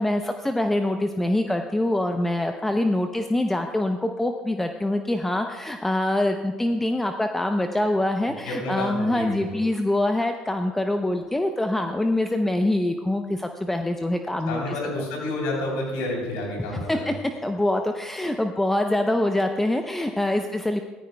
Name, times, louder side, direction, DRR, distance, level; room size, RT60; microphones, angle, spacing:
voice 1, 0.0-14.8 16.7-17.1 17.4-20.8, left 1 dB, 10° left, 5 dB, 0.7 m, -24 dB
voice 2, 8.4-9.6 14.5-17.1, left 1 dB, 80° left, -1 dB, 3.4 m, -30 dB
14.5 x 14.0 x 2.3 m, 1.3 s
supercardioid pair, 80°, 3 cm